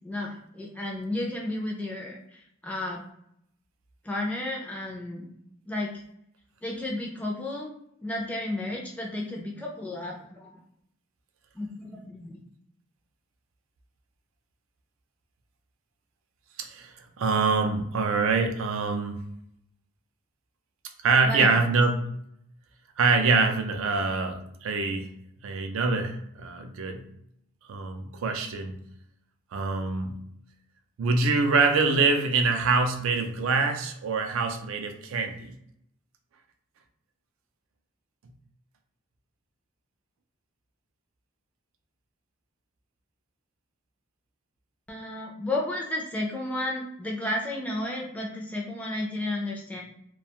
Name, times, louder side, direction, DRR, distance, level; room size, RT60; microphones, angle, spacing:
voice 1, 0.0-3.0 4.0-5.3 5.7-5.9 6.6-7.7 8.0-10.6 11.5-12.4 21.2-21.6 44.9-49.8, left 1 dB, 5° left, -2 dB, 0.3 m, -32 dB
voice 2, 16.6-19.2 21.0-22.1 23.0-25.1 25.4-27.0 27.7-28.8 29.5-30.2 31.0-35.5, right 4 dB, 70° right, 5 dB, 0.4 m, -25 dB
2.3 x 2.2 x 2.8 m, 0.75 s
head